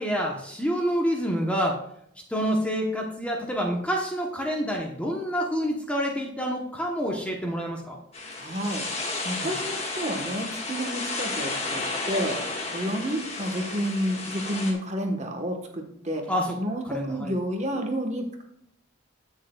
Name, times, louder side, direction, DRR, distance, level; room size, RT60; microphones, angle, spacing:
voice 1, 0.0-1.8 2.3-8.0 9.4-9.5 16.3-16.6 16.8-17.3, equal, 5° left, 0 dB, 0.9 m, -27 dB
sound 1, 8.1-14.7, left 3 dB, 30° left, 1.6 m, -32 dB
voice 2, 8.4-8.8 9.2-12.4 12.7-16.3 16.6-18.4, equal, 35° right, 3 dB, 1.2 m, -30 dB
15.5 x 6.4 x 2.3 m, 0.73 s
head